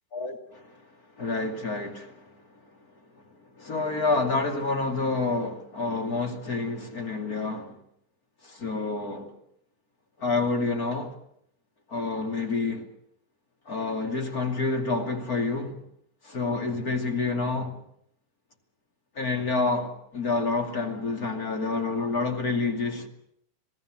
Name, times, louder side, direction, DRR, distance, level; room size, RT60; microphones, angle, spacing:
voice 1, 0.1-0.8 1.2-2.3 3.6-7.8 8.4-9.3 10.2-11.1 11.9-12.9 13.7-15.8 16.2-17.8 19.2-23.1, left 3 dB, 30° left, 2.7 m, -28 dB
26.5 x 18.5 x 7.8 m
omnidirectional pair, 3.7 m